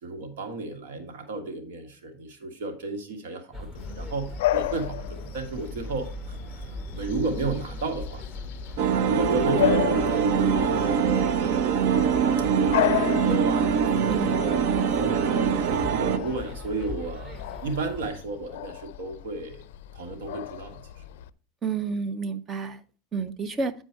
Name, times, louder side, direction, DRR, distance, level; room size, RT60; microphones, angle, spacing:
voice 1, 0.0-6.6 6.9-8.2 9.1-12.1 12.5-14.6 15.0-19.6 19.9-20.8, right 3 dB, 85° right, 6 dB, 1.6 m, -33 dB
sound 1, 3.5-18.1, left 1 dB, 10° right, 1.6 m, -39 dB
Bark / Bird vocalization bird call bird song, 3.7-21.3, left 14 dB, 80° left, 0.4 m, -34 dB
sound 2, 8.8-16.2, right 7 dB, 65° right, 0.7 m, -23 dB
voice 2, 14.1-14.6 21.6-22.8 23.1-23.7, right 5 dB, 25° right, 14 dB, 0.6 m, -29 dB
9.1 x 4.4 x 4.5 m, 0.40 s
supercardioid pair, 135°, 0 cm